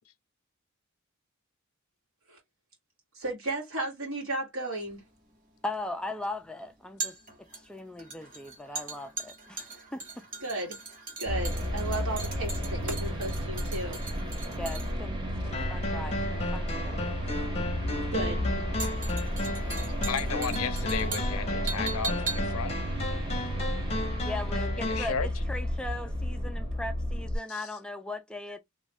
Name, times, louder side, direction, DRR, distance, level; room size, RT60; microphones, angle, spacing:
voice 1, 3.1-5.0 10.4-10.8 11.2-14.0 18.1-18.4, right 2 dB, 75° right, 2.0 m, -34 dB
sound 1, 4.9-24.1 24.4-24.5, right 4 dB, 40° right, 1.2 m, -40 dB
voice 2, 5.6-7.2 7.6-10.3 14.6-17.1 24.2-28.6, left 2 dB, 5° left, 0.3 m, -39 dB
sound 2, 11.3-27.4, equal, 20° right, 0.9 m, -32 dB
sound 3, 15.5-25.1, left 2 dB, 30° left, 0.7 m, -35 dB
voice 3, 20.1-22.7 24.8-25.3 27.5-27.7, left 7 dB, 80° left, 0.5 m, -34 dB
3.1 x 2.4 x 3.3 m
head